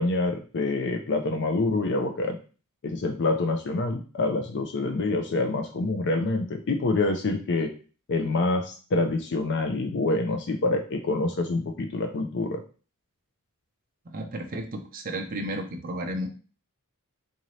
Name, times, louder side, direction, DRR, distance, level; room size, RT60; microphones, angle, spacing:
voice 1, 0.0-2.4 2.8-7.7 8.1-12.6, left 2 dB, 55° left, 5 dB, 0.5 m, -26 dB
voice 2, 14.1-16.3, right 1 dB, 40° right, 3 dB, 0.5 m, -33 dB
3.9 x 2.6 x 3.1 m, 0.36 s
head